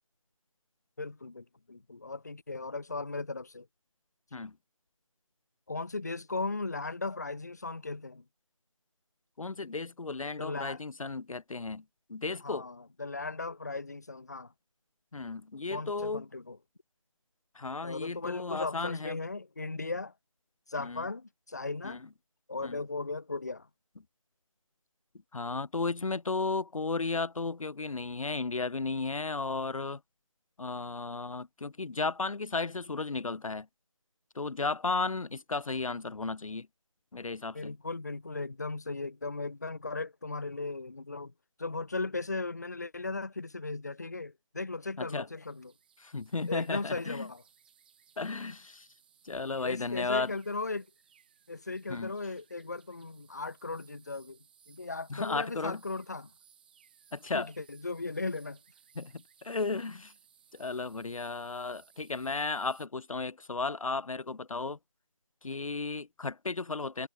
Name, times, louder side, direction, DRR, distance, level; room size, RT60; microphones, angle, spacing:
voice 1, 1.0-3.7 5.7-8.2 10.4-10.8 12.4-14.5 15.7-16.6 17.8-20.1 20.7-22.0 22.5-23.7 37.5-41.3 41.6-45.7 46.5-47.4 49.6-50.9 51.5-54.4 54.7-56.3 57.3-58.6, left 3 dB, 30° left, 0.6 m, -37 dB
voice 2, 9.4-11.8 12.1-12.7 15.1-16.2 17.6-19.2 20.8-21.0 21.8-22.0 22.6-22.8 25.3-30.0 30.6-33.7 34.4-36.7 37.1-37.7 45.0-45.3 46.0-47.3 48.2-48.9 49.2-50.3 51.9-52.1 55.1-55.8 57.1-57.5 59.0-60.1 60.5-64.8 65.4-67.1, left 3 dB, 85° left, 0.6 m, -34 dB
sound 1, 45.3-62.9, right 8 dB, 15° right, 2.5 m, -63 dB
figure-of-eight pair, 165°, 17 cm